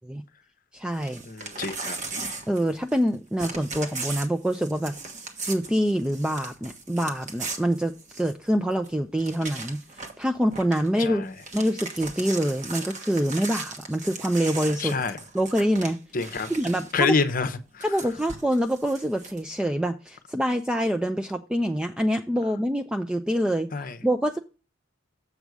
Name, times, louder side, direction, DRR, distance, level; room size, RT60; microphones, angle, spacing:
voice 1, 0.7-1.2 2.5-5.0 5.4-11.3 11.5-15.0 15.3-16.0 16.5-17.1 17.8-23.7 24.0-24.4, equal, 5° right, 0.3 m, -26 dB
Crumpling crinkling / Tearing, 0.9-3.1 3.4-8.5 8.8-8.9 9.2-10.2 10.5-10.9 11.2-17.0 17.8-19.4, right 3 dB, 40° right, 1.1 m, -37 dB
voice 2, 1.2-2.0 11.0-11.3 14.8-15.2 16.1-16.5 16.9-17.9 23.7-24.0, left 4 dB, 45° left, 0.8 m, -27 dB
7.2 x 5.3 x 4.7 m
head